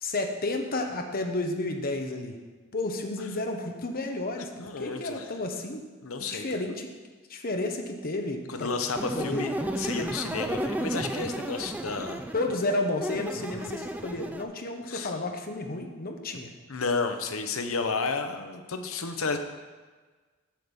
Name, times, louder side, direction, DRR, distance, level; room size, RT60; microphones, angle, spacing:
voice 1, 0.0-2.4 2.7-4.5 4.8-5.8 6.3-6.9 7.3-8.7 9.2-9.5 12.3-16.5, left 2 dB, 45° left, 4 dB, 0.9 m, -31 dB
voice 2, 4.6-5.3 6.0-6.4 8.5-12.3 14.9-15.1 16.7-19.4, left 4 dB, 80° left, 7 dB, 0.8 m, -32 dB
sound 1, 8.9-14.4, right 1 dB, 10° right, 0.4 m, -33 dB
7.6 x 6.7 x 5.4 m, 1.4 s
head